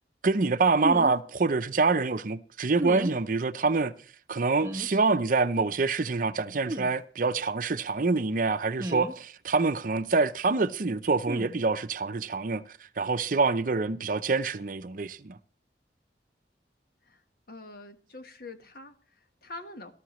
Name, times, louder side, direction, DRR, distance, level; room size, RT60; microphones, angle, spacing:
voice 1, 0.2-3.9 4.3-12.6 13.0-15.4, right 4 dB, 50° right, 0.6 m, -26 dB
sound 1, 0.8-1.1 2.8-3.2 4.6-4.9 6.7-6.9 8.8-9.1 11.3-11.5, equal, 15° right, 1.0 m, -32 dB
voice 2, 17.5-19.9, left 2 dB, 55° left, 1.3 m, -45 dB
18.0 x 13.0 x 3.1 m
head